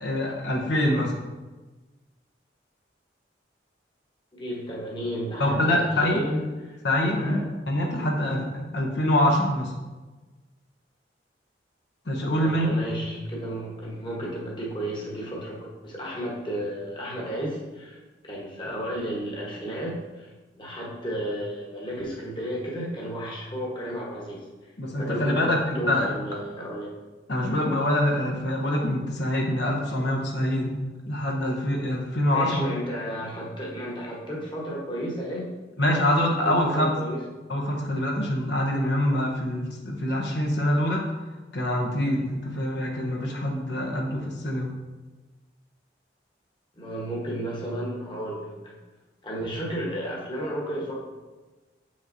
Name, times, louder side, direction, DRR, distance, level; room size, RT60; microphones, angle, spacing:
voice 1, 0.0-1.1 5.4-6.2 6.8-7.4 7.7-9.7 12.1-12.7 24.8-26.1 27.3-30.7 31.1-32.6 35.8-36.9 37.5-41.0 41.5-44.7, left 1 dB, 65° left, 0 dB, 0.9 m, -25 dB
voice 2, 4.3-6.8 7.2-7.5 12.4-20.3 20.6-24.4 25.0-26.9 32.3-35.5 36.4-37.2 46.8-48.8 49.2-50.9, equal, 25° left, -3 dB, 1.1 m, -33 dB
7.1 x 6.2 x 2.6 m, 1.2 s
head